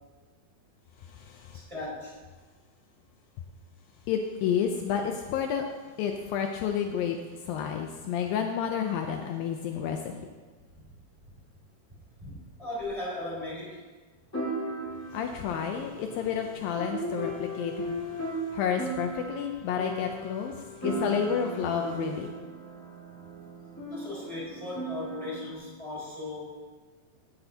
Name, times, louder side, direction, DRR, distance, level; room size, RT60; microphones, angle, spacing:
voice 1, 1.5-2.1 10.7-10.9 12.2-12.3 12.6-13.8 23.9-26.7, left 2 dB, 10° right, -7 dB, 4.0 m, -37 dB
voice 2, 4.1-5.6 6.0-7.2 7.5-10.1 15.1-18.0 18.5-20.5 20.8-22.3, left 8 dB, 80° left, 4 dB, 2.3 m, -30 dB
sound 1, 12.8-12.9 14.3-25.5, right 1 dB, 10° left, 0.9 m, -37 dB
17.0 x 11.0 x 2.8 m, 1.4 s
omnidirectional pair, 4.3 m